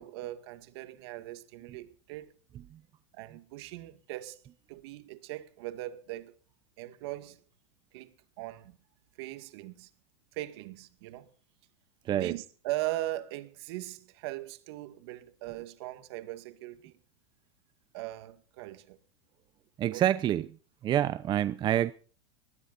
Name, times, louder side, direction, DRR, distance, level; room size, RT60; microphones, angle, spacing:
voice 1, 0.0-2.3 3.1-6.3 6.8-7.4 7.9-8.8 9.2-9.9 10.3-11.3 12.1-16.9 17.9-19.0 19.9-20.0, right 16 dB, 65° right, 2.2 m, -40 dB
voice 2, 12.0-12.4 19.8-20.5 20.8-21.9, right 11 dB, 30° right, 0.8 m, -27 dB
22.0 x 19.0 x 2.6 m
hypercardioid pair, 115°, 14 cm